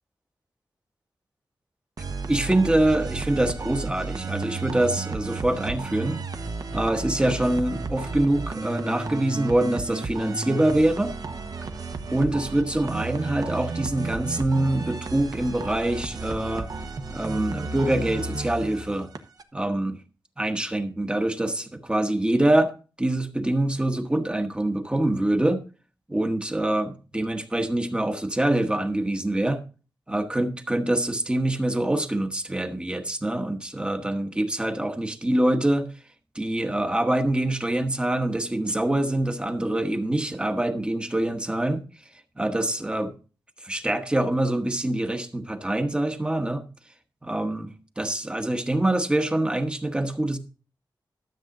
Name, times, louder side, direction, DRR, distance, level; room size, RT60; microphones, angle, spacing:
sound 1, 2.0-19.4, right 4 dB, 50° right, 1.2 m, -33 dB
voice 1, 2.3-6.2 6.7-11.2 12.1-16.7 17.1-19.1 19.5-20.0 20.4-22.7 23.0-25.6 26.1-29.6 30.1-35.9 36.3-41.8 42.4-43.1 43.6-46.6 47.2-50.4, right 1 dB, 10° right, 1.2 m, -25 dB
13.0 x 7.7 x 3.8 m
wide cardioid pair, 180°, 8 cm